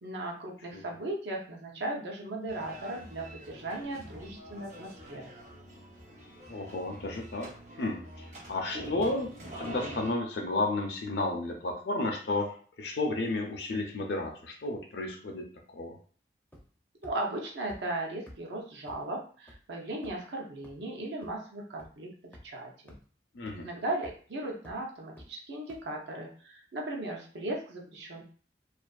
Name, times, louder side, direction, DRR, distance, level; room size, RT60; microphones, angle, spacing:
voice 1, 0.0-5.3 17.0-22.1 22.4-23.0 23.5-28.2, right 1 dB, 75° right, 0 dB, 0.6 m, -37 dB
sound 1, 2.5-10.1, equal, 45° right, 0.8 m, -45 dB
voice 2, 6.5-7.5 7.8-9.3 9.6-16.0 23.3-23.7, left 2 dB, 70° left, 3 dB, 0.5 m, -32 dB
sound 2, 16.5-16.8 17.0-17.1 17.7-17.8 18.3-18.4 18.9-19.0 19.5-19.6 20.0-20.3 20.6-20.7 21.2-21.3 21.8-21.9 22.3-22.4 22.9-23.0 23.5-23.6 24.0-24.3 24.6-24.7 25.2-25.3 25.7-25.8, left 1 dB, 10° left, 0.4 m, -49 dB
2.4 x 2.4 x 2.3 m, 0.43 s
head